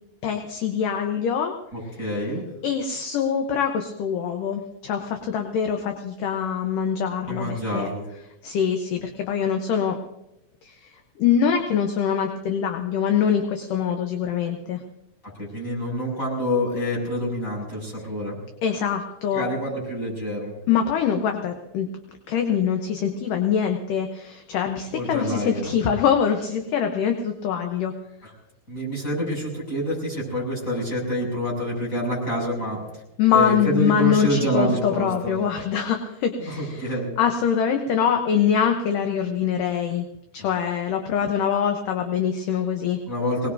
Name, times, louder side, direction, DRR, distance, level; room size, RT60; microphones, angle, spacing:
voice 1, 0.2-1.5 2.6-7.9 8.4-10.0 10.6-14.8 18.6-19.4 20.7-21.9 22.3-27.9 33.2-36.9 37.2-40.1 40.3-43.0, left 7 dB, 70° left, 4 dB, 2.3 m, -24 dB
voice 2, 1.7-2.4 7.3-8.1 15.2-18.4 19.3-20.5 24.9-25.7 28.7-32.8 33.3-35.3 36.6-37.1 43.1-43.5, equal, 20° left, -4 dB, 6.9 m, -27 dB
23.0 x 20.0 x 2.7 m, 0.88 s
omnidirectional pair, 4.6 m